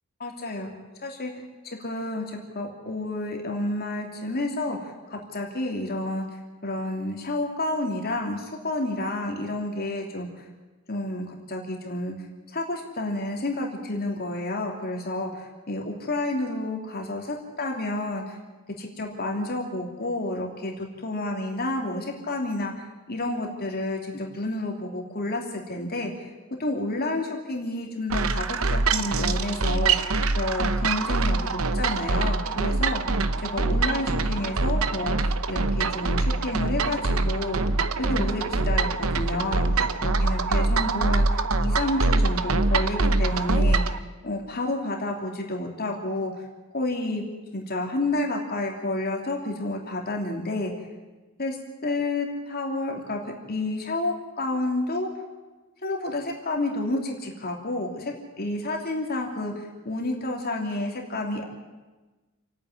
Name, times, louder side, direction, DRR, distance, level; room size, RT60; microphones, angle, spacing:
voice 1, 0.2-0.7 1.0-1.3 1.6-10.3 10.9-12.2 12.5-18.4 18.8-26.3 26.6-33.2 33.5-37.7 38.0-44.0 44.2-46.4 46.7-47.2 47.5-50.9 51.4-51.6 51.8-53.2 53.5-55.1 55.8-61.4, left 2 dB, 45° left, 1 dB, 2.9 m, -30 dB
sound 1, 28.1-44.0, right 3 dB, 75° right, 0.9 m, -24 dB
28.5 x 9.5 x 9.8 m, 1.2 s
head